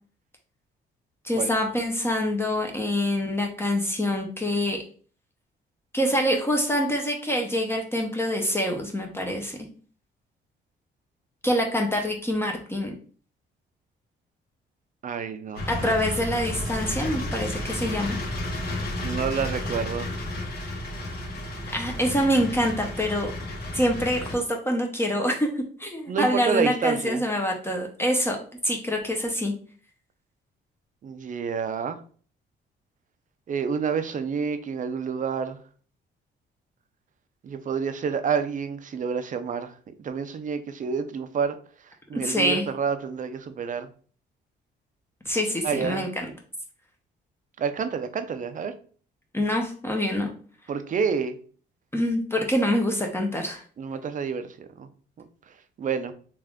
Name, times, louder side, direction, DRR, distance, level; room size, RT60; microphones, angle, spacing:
voice 1, 1.2-4.8 5.9-9.6 11.4-12.9 15.7-18.2 21.7-23.3 23.7-28.4 28.6-29.5 42.1-42.6 45.3-46.3 49.3-50.3 51.9-53.6, equal, 10° left, 0.7 m, -25 dB
voice 2, 15.0-15.9 19.0-20.1 26.1-27.2 31.0-32.0 33.5-35.6 37.4-39.7 40.0-41.6 42.1-43.9 45.6-46.1 47.6-48.7 50.7-51.4 53.8-54.9 55.8-56.1, right 6 dB, 40° right, 0.5 m, -28 dB
sound 1, 15.5-24.3, left 1 dB, 50° left, 1.3 m, -32 dB
3.3 x 2.4 x 3.6 m
cardioid pair, 90°, 20 cm